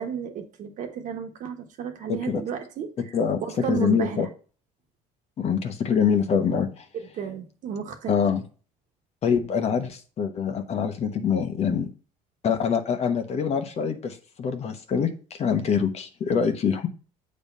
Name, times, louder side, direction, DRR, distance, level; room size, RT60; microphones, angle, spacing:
voice 1, 0.0-3.1 3.4-4.3 6.9-8.2, right 7 dB, 55° right, 5 dB, 1.4 m, -33 dB
voice 2, 2.1-2.4 3.1-4.3 5.4-6.8 8.1-8.4 9.2-11.9 12.4-16.9, left 7 dB, 45° left, 7 dB, 1.2 m, -25 dB
7.5 x 3.3 x 5.4 m, 0.37 s
supercardioid pair, 100°, 16 cm